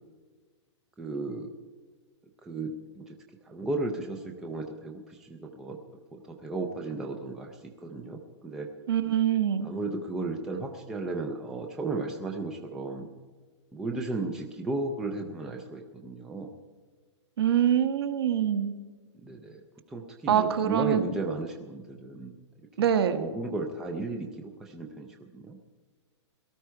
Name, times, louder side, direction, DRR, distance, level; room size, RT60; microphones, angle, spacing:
voice 1, 1.0-1.5 2.5-3.1 3.4-5.8 6.1-8.7 9.6-13.1 13.7-16.6 19.2-19.6 19.9-22.3 22.8-25.6, right 2 dB, 5° right, 2 dB, 0.4 m, -34 dB
voice 2, 8.9-9.7 17.4-18.7 20.3-21.0 22.8-23.2, right 9 dB, 55° right, 9 dB, 1.3 m, -24 dB
17.5 x 13.0 x 4.6 m, 1.4 s
hypercardioid pair, 180°, 16 cm